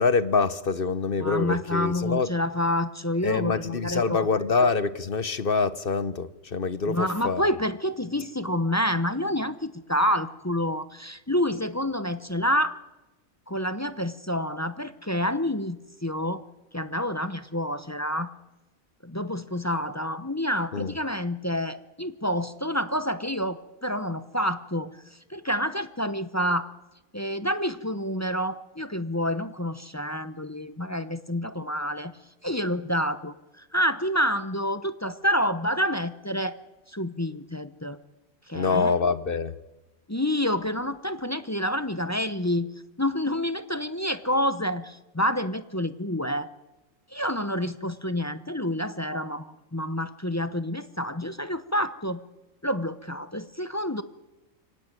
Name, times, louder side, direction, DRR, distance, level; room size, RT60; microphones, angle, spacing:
voice 1, 0.0-2.3 3.2-7.4 20.7-20.9 38.5-39.5, left 4 dB, 45° left, 15 dB, 1.1 m, -25 dB
voice 2, 1.2-4.3 6.9-12.8 13.5-16.5 16.7-18.3 19.0-24.9 25.3-26.7 27.1-32.1 32.4-36.6 36.9-38.0 38.5-38.9 40.1-42.7 43.0-46.5 47.1-52.2 52.6-54.0, equal, 15° left, 12 dB, 0.7 m, -28 dB
24.5 x 18.0 x 9.1 m, 1.0 s
omnidirectional pair, 1.5 m